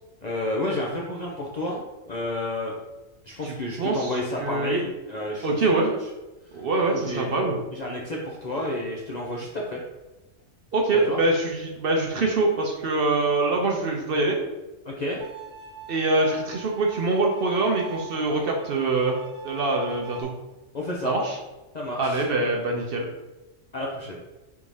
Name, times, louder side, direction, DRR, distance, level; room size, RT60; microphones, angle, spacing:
voice 1, 0.2-2.8 3.2-5.9 6.5-6.6 6.9-9.8 11.0-11.2 14.9-15.2 20.7-21.1 21.7-22.2 23.7-24.2, left 1 dB, 50° left, -3 dB, 0.5 m, -31 dB
voice 2, 3.4-4.9 5.4-5.9 6.5-7.6 10.7-14.4 15.9-19.2 19.4-20.3 21.0-21.4 22.0-23.1, right 2 dB, 55° right, 0 dB, 0.7 m, -24 dB
Bowed string instrument, 15.2-20.2, right 9 dB, 75° right, 1.0 m, -43 dB
3.6 x 2.7 x 4.7 m, 1.1 s
omnidirectional pair, 1.3 m